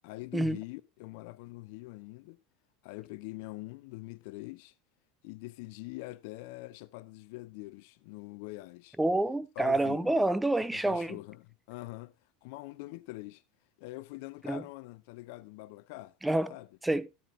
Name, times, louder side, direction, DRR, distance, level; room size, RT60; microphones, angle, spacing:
voice 1, 0.0-2.4 2.8-4.7 5.2-9.0 9.6-10.1 10.6-12.1 12.4-13.4 13.8-16.1 16.5-16.7, left 20 dB, 60° left, 0.5 m, -44 dB
voice 2, 9.0-11.2 14.5-14.6 16.2-16.5 16.8-17.1, right 2 dB, 5° right, 0.5 m, -28 dB
12.5 x 10.0 x 2.5 m
hypercardioid pair, 80°, 0 cm